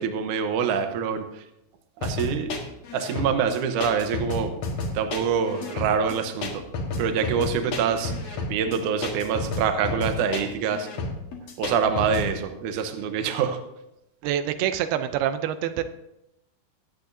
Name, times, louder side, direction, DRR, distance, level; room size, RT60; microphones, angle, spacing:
voice 1, 0.0-1.4 2.0-2.6 2.9-4.5 4.9-6.7 7.0-10.9 11.6-13.6, right 7 dB, 70° right, 7 dB, 2.1 m, -26 dB
sound 1, 2.0-12.3, left 3 dB, 55° left, 2.2 m, -31 dB
voice 2, 14.2-15.8, right 10 dB, 90° right, 10 dB, 2.7 m, -26 dB
22.5 x 8.3 x 2.7 m, 0.87 s
omnidirectional pair, 4.4 m